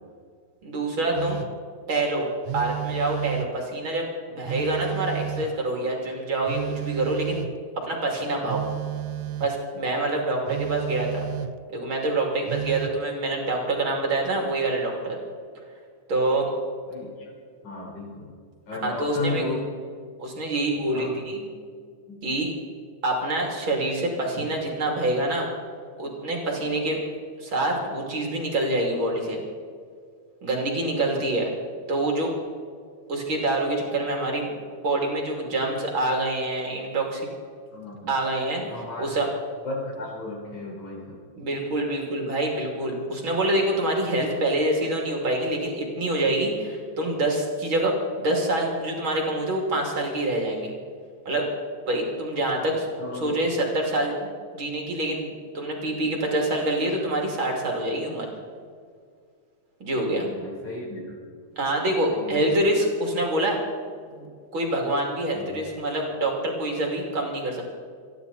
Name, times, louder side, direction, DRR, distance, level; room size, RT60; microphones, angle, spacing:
voice 1, 0.6-1.4 1.9-2.3 2.5-7.5 7.8-8.6 9.4-11.3 11.7-15.2 16.1-16.5 18.8-19.4 20.2-21.5 22.2-22.5 23.0-25.5 26.0-27.0 27.4-29.4 30.4-31.5 31.9-32.3 33.1-34.6 34.8-37.3 38.1-38.6 39.0-39.3 41.4-50.7 51.3-51.5 51.9-52.9 53.2-54.2 54.5-58.3 59.8-60.3 61.6-63.6 64.1-67.6, right 1 dB, 45° right, 0 dB, 3.4 m, -26 dB
Telephone, 1.2-1.7 2.5-3.7 4.5-5.7 6.5-7.7 8.5-9.6 10.5-11.7 12.5-13.0, right 12 dB, 85° right, 2.0 m, -32 dB
voice 2, 16.9-17.3 17.6-18.4 18.7-19.7 20.9-21.2 22.1-22.2 37.7-38.1 38.6-39.1 39.6-41.2 52.7-53.4 60.2-61.3 62.1-62.4 65.3-65.5 65.9-66.0, left 2 dB, 80° left, -1 dB, 5.6 m, -35 dB
28.5 x 11.0 x 4.1 m, 2.1 s
omnidirectional pair, 3.3 m